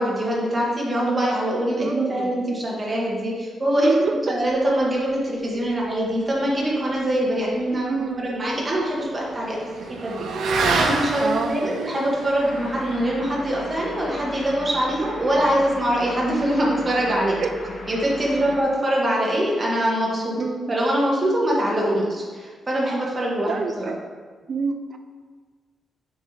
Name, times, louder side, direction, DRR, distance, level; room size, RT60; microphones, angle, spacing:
voice 1, 0.0-7.9 8.2-17.4 17.9-20.4 20.7-23.9, right 1 dB, 20° right, -4 dB, 1.4 m, -23 dB
voice 2, 1.8-2.3 3.8-4.2 7.7-8.3 11.2-11.8 17.4-17.7 20.4-20.7 23.5-24.0 24.5-25.0, right 4 dB, 45° right, 6 dB, 0.5 m, -27 dB
Motorcycle / Accelerating revving vroom, 7.6-16.4, right 3 dB, 85° right, 0.7 m, -30 dB
sound 1, 12.3-18.6, left 2 dB, 55° left, 1.2 m, -38 dB
7.2 x 4.3 x 3.3 m, 1.5 s
wide cardioid pair, 150°, 0 cm